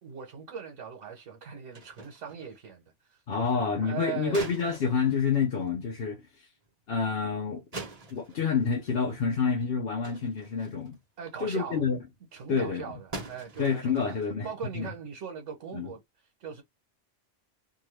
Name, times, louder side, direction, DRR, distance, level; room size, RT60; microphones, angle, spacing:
voice 1, 0.0-2.8 3.1-4.5 11.2-11.8 12.3-14.1 14.4-16.0 16.4-16.6, right 7 dB, 85° right, 1.2 m, -40 dB
sound 1, 1.7-2.6 4.3-5.8 6.7-6.8 7.7-9.1 9.4-9.6 10.0-11.0 11.4-11.6 11.9-12.0 12.4-12.6 13.1-14.3, right 2 dB, 35° right, 1.0 m, -44 dB
voice 2, 3.3-6.5 6.9-7.6 8.1-11.0 11.4-12.0 12.5-12.9 13.6-14.5 14.7-14.9 15.7-15.9, left 5 dB, 60° left, 0.9 m, -28 dB
2.7 x 2.5 x 3.1 m
omnidirectional pair, 1.2 m